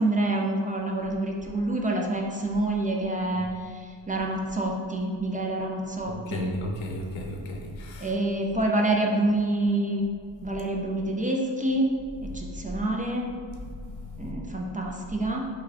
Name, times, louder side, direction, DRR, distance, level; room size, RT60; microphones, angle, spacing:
voice 1, 0.0-6.5 8.0-10.0 10.4-11.9 12.2-13.3 14.2-15.5, right 1 dB, 20° right, 0 dB, 0.4 m, -27 dB
voice 2, 6.1-8.1 13.9-14.1, left 1 dB, 85° left, 2 dB, 0.9 m, -35 dB
5.4 x 2.3 x 4.1 m, 2.2 s
cardioid pair, 110°, 45 cm